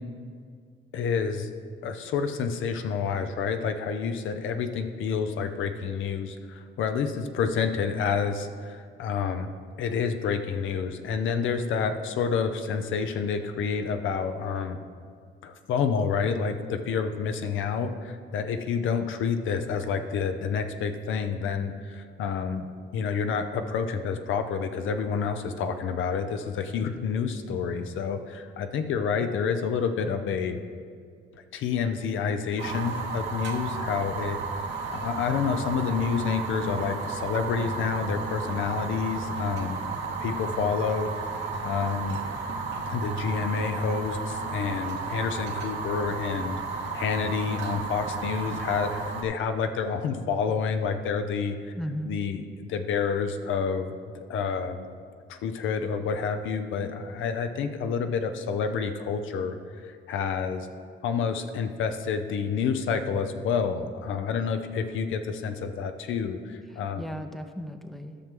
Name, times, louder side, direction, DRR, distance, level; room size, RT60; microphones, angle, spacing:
voice 1, 0.9-1.5 1.8-9.5 9.8-14.8 15.4-22.7 22.9-30.6 31.5-34.4 34.9-39.8 40.2-41.1 41.6-42.2 42.9-51.7 52.1-54.9 55.3-60.7 61.0-67.0, left 6 dB, 80° left, 7 dB, 0.7 m, -29 dB
Fire, 32.6-49.2, right 4 dB, 65° right, 1.2 m, -33 dB
voice 2, 51.7-52.2 66.7-68.2, equal, ahead, 7 dB, 0.6 m, -36 dB
13.5 x 6.0 x 3.7 m, 2.1 s
cardioid pair, 90°, 20 cm